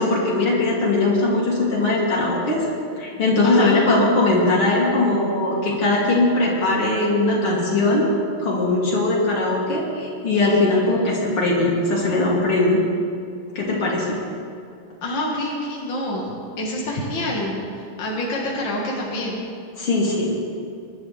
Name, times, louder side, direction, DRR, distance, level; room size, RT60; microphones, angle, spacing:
voice 1, 0.0-2.7 3.0-8.1 8.4-12.8 13.5-14.2 19.8-20.4, left 2 dB, 80° left, -4 dB, 3.8 m, -20 dB
voice 2, 3.4-4.1 10.9-11.1 15.0-16.3 16.6-19.4, left 1 dB, 60° left, -4 dB, 2.4 m, -27 dB
23.5 x 11.5 x 3.5 m, 2.4 s
omnidirectional pair, 2.4 m